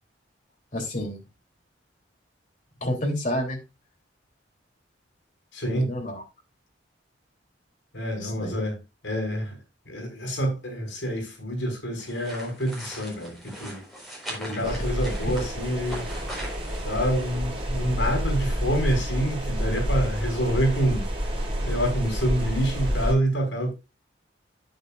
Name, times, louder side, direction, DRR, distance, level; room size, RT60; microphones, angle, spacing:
voice 1, 0.7-1.2 2.8-3.6 5.7-6.2 8.2-8.5 14.5-14.8, left 1 dB, 45° left, 3.4 m, -30 dB
voice 2, 5.5-5.9 7.9-8.7 9.0-9.6 9.9-13.8 14.3-16.1 16.8-21.1 21.6-23.7, equal, 80° left, 5.7 m, -27 dB
sound 1, 12.0-17.9, right 1 dB, ahead, 4.8 m, -41 dB
sound 2, 14.6-23.1, equal, 30° right, 3.9 m, -29 dB
11.0 x 9.0 x 2.5 m
head